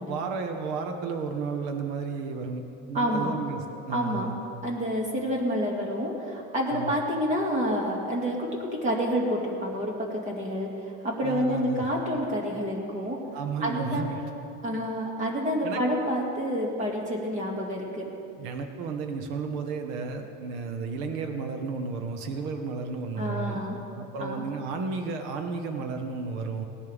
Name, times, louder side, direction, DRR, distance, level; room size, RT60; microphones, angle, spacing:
voice 1, 0.1-2.6 2.9-4.4 6.7-6.9 11.2-11.8 13.3-14.2 15.6-15.8 18.4-23.6 24.0-26.6, right 4 dB, 60° right, 5 dB, 1.3 m, -33 dB
voice 2, 2.9-3.3 3.9-4.3 4.6-10.7 11.0-13.2 13.6-14.1 14.6-18.1 23.2-23.8 24.2-24.5, equal, 25° right, -1 dB, 2.2 m, -28 dB
19.0 x 11.0 x 3.5 m, 2.6 s
cardioid pair, 160°, 31 cm